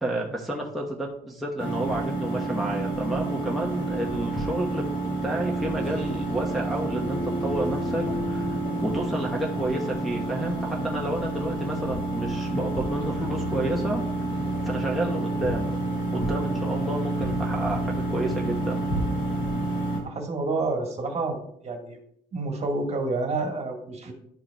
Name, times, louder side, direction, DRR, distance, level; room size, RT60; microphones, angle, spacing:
voice 1, 0.0-4.9 5.2-8.5 8.8-14.0 14.6-15.8 16.1-18.8, right 1 dB, ahead, -3 dB, 0.9 m, -30 dB
sound 1, 1.6-20.0, right 2 dB, 55° left, 2.2 m, -29 dB
voice 2, 20.0-22.0 22.3-24.1, right 3 dB, 40° right, 2 dB, 1.5 m, -29 dB
11.5 x 4.7 x 2.2 m, 0.70 s
cardioid pair, 110°, 17 cm